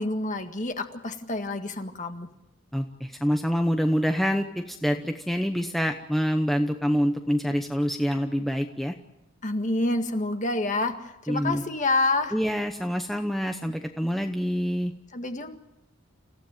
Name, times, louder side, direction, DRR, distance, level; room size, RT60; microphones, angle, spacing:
voice 1, 0.0-2.3 9.4-10.9 11.2-12.3 15.1-15.6, left 2 dB, 35° left, 6 dB, 1.8 m, -27 dB
voice 2, 2.7-8.9 11.3-11.6 12.3-14.9, equal, ahead, 5 dB, 0.9 m, -26 dB
28.0 x 15.5 x 9.1 m, 0.93 s
head